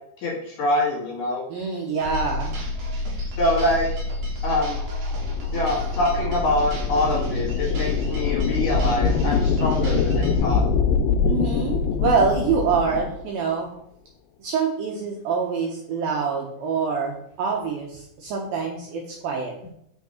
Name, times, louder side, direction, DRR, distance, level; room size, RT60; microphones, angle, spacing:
voice 1, 0.2-1.4 3.4-3.9 4.4-4.8 5.5-10.6, left 1 dB, 60° left, -3 dB, 2.7 m, -24 dB
voice 2, 1.5-2.6 11.2-13.7 14.4-19.5, right 5 dB, 75° right, -1 dB, 2.3 m, -25 dB
sound 1, 2.0-10.4, left 2 dB, 55° right, 2.5 m, -29 dB
sound 2, 5.1-13.2, left 6 dB, 85° left, 2.9 m, -24 dB
6.0 x 5.8 x 4.3 m, 0.74 s
omnidirectional pair, 5.2 m